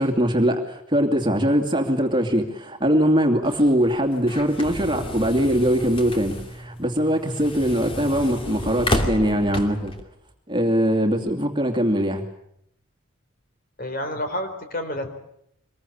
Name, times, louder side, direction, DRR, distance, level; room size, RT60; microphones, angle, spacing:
voice 1, 0.0-9.9 10.5-12.2, equal, 20° right, 3 dB, 2.5 m, -21 dB
sound 1, 3.4-10.0, left 1 dB, 25° left, 2.7 m, -31 dB
voice 2, 13.8-15.1, left 1 dB, 40° left, 7 dB, 4.1 m, -29 dB
25.0 x 21.5 x 8.7 m, 0.75 s
head